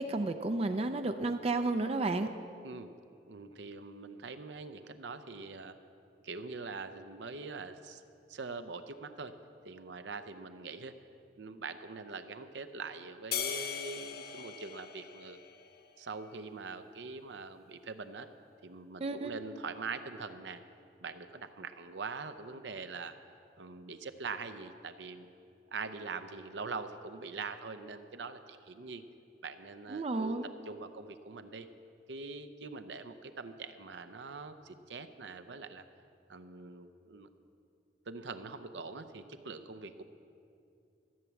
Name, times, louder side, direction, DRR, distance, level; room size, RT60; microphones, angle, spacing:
voice 1, 0.0-2.3 19.0-19.4 29.9-30.5, right 2 dB, 35° right, 7 dB, 0.5 m, -32 dB
voice 2, 3.3-5.7 6.2-8.0 8.3-9.3 9.6-10.9 11.4-15.4 16.0-18.3 18.6-20.6 21.0-23.2 23.6-25.3 25.7-29.0 29.4-30.3 30.7-31.7 32.1-35.8 36.3-37.3 38.1-40.0, right 4 dB, 75° right, 10 dB, 0.6 m, -43 dB
sound 1, 13.3-15.9, left 8 dB, 55° left, 0.8 m, -39 dB
14.0 x 7.4 x 7.0 m, 2.6 s
head